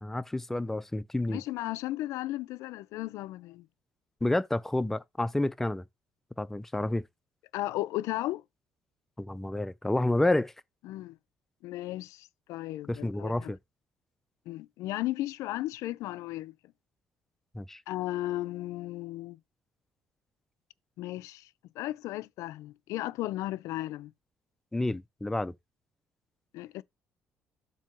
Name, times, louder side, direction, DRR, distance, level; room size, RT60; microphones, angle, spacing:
voice 1, 0.0-1.4 4.2-5.8 6.4-7.0 9.2-10.5 12.9-13.6 17.5-17.8 24.7-25.5, left 2 dB, 5° left, 0.3 m, -29 dB
voice 2, 1.3-3.7 7.5-8.4 10.8-11.2 11.6-13.5 14.5-16.5 17.9-19.4 21.0-21.5 21.8-24.1 26.5-26.8, left 16 dB, 85° left, 0.4 m, -35 dB
7.5 x 2.7 x 5.9 m
cardioid pair, 175°, 5 cm